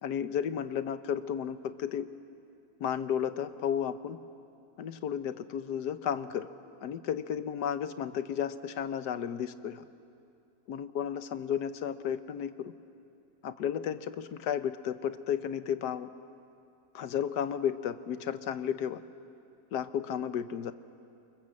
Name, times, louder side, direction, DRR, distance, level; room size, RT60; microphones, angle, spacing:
voice 1, 0.0-2.1 2.8-4.2 4.8-6.5 6.8-9.8 10.7-12.7 13.4-16.1 16.9-19.0 19.7-20.7, left 8 dB, 80° left, 12 dB, 1.4 m, -33 dB
28.0 x 23.5 x 7.5 m, 2.6 s
omnidirectional pair, 1.7 m